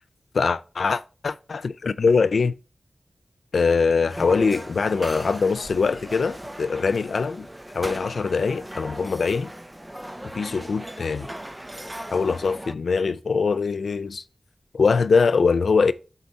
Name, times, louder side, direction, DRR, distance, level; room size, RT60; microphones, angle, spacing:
voice 1, 0.3-2.5 3.5-7.5 7.7-9.5 10.3-11.3 12.1-14.2 14.7-15.9, left 5 dB, 85° left, 0.4 m, -22 dB
sound 1, 4.1-12.7, right 1 dB, 15° right, 0.6 m, -38 dB
7.9 x 4.0 x 4.2 m
cardioid pair, 45°, 0 cm